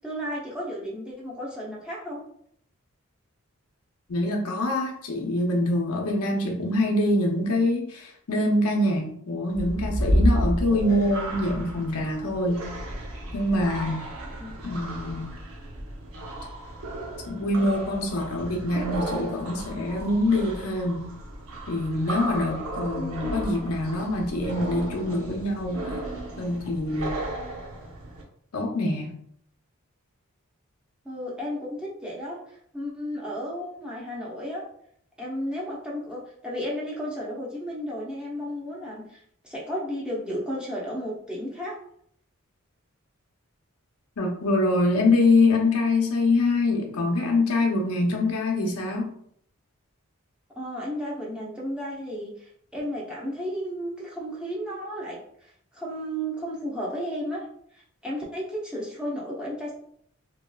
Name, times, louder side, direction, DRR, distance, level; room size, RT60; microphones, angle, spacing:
voice 1, 0.0-2.2 14.4-14.5 23.0-23.4 31.0-34.6 35.2-41.8 50.6-57.4 57.7-59.7, equal, 5° right, -5 dB, 0.7 m, -33 dB
voice 2, 4.1-12.7 13.3-14.1 14.6-15.4 17.3-21.1 21.7-26.0 26.4-27.2 28.5-29.1 44.2-49.1, left 2 dB, 90° left, 0 dB, 0.7 m, -25 dB
sound 1, 9.5-28.2, right 1 dB, 85° right, 0.8 m, -32 dB
3.0 x 2.8 x 2.3 m, 0.66 s
head